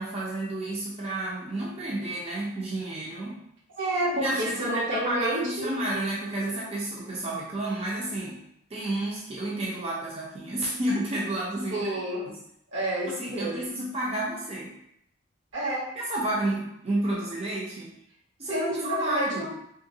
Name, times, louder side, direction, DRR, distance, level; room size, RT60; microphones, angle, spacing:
voice 1, 0.0-3.4 4.1-8.4 8.7-11.9 12.3-12.4 13.1-14.7 16.0-18.0 18.4-19.5, right 1 dB, 30° right, -5 dB, 0.5 m, -31 dB
voice 2, 3.8-5.7 11.7-12.3 12.7-13.7 15.5-15.9 18.4-19.5, right 1 dB, 75° right, -5 dB, 1.1 m, -29 dB
3.6 x 2.1 x 2.6 m, 0.74 s
head